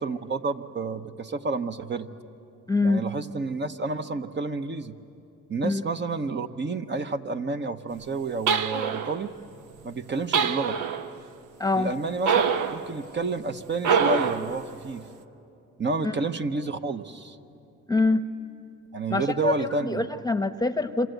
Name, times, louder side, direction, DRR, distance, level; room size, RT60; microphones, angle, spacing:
voice 1, 0.0-2.1 2.8-5.0 5.5-9.3 9.8-10.8 11.7-12.4 12.7-15.0 15.8-17.4 18.9-20.1, right 3 dB, 35° right, 7 dB, 1.0 m, -30 dB
voice 2, 2.7-3.0 5.6-5.8 11.6-11.9 16.0-16.1 17.9-18.3 19.1-21.1, left 3 dB, 15° left, 10 dB, 0.9 m, -25 dB
sound 1, 8.5-9.2 10.3-11.1 12.3-12.8 13.8-14.5, right 6 dB, 85° right, 1.1 m, -24 dB
27.0 x 26.5 x 8.1 m, 2.7 s
cardioid pair, 90°, 30 cm